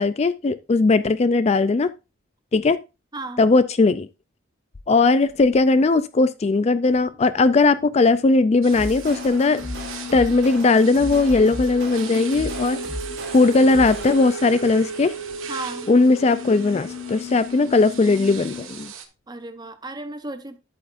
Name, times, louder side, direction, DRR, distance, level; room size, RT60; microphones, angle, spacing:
voice 1, 0.0-1.9 2.5-2.8 3.4-4.1 4.9-9.6 10.1-12.8 13.3-15.1 15.9-18.9, left 3 dB, 30° left, 0.3 m, -18 dB
voice 2, 3.1-3.4 15.5-15.9 19.3-20.6, right 2 dB, 20° right, 0.8 m, -34 dB
sound 1, 6.9-18.6, left 2 dB, 60° left, 4.3 m, -36 dB
sound 2, 8.6-19.1, right 7 dB, 70° right, 1.6 m, -40 dB
sound 3, 8.7-14.4, right 1 dB, 55° right, 2.4 m, -35 dB
10.5 x 8.4 x 2.5 m
head